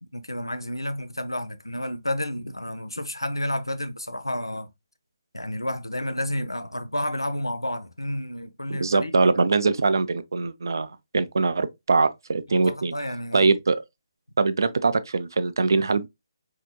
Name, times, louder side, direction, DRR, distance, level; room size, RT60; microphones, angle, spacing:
voice 1, 0.0-4.7 5.3-9.2 12.5-13.5, left 1 dB, 85° left, 0.5 m, -31 dB
voice 2, 8.7-12.9 13.3-13.8 14.4-16.1, right 4 dB, 60° right, 0.4 m, -22 dB
4.1 x 2.8 x 2.2 m
figure-of-eight pair, 145°, 2 cm